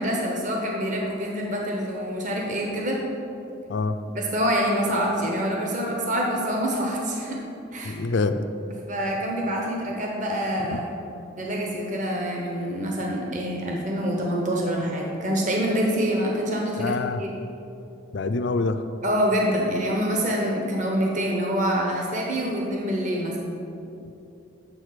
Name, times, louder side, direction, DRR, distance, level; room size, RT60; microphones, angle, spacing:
voice 1, 0.0-3.0 4.1-7.4 7.7-8.0 8.9-10.9 11.4-17.3 19.0-23.5, equal, 40° right, -1 dB, 1.1 m, -26 dB
voice 2, 7.8-8.3 16.8-17.2 18.1-18.8 24.0-24.1, left 3 dB, 60° left, 9 dB, 0.4 m, -25 dB
7.4 x 6.3 x 6.6 m, 2.8 s
head